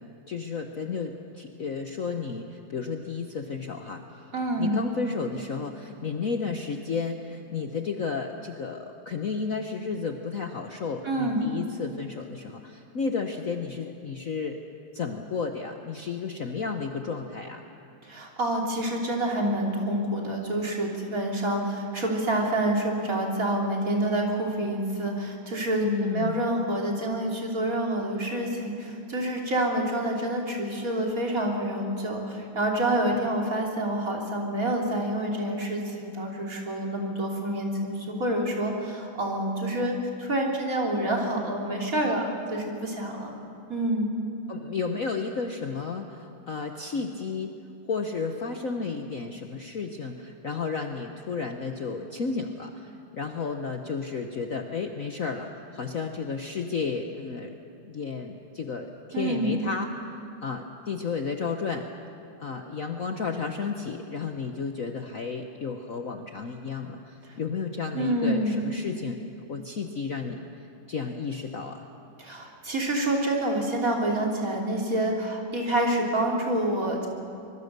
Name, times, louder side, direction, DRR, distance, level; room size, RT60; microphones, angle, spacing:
voice 1, 0.0-4.3 4.6-14.6 14.9-17.6 25.8-26.4 44.5-47.5 47.9-57.5 57.8-59.9 60.4-61.9 62.4-69.2 69.5-70.4 70.9-71.9, left 5 dB, 50° left, 4 dB, 1.2 m, -32 dB
voice 2, 4.3-4.8 11.0-11.4 18.0-43.3 43.7-44.1 59.1-59.6 67.9-68.6 72.2-77.1, right 1 dB, 40° right, -1 dB, 3.5 m, -27 dB
25.0 x 22.0 x 6.8 m, 2.6 s
omnidirectional pair, 2.4 m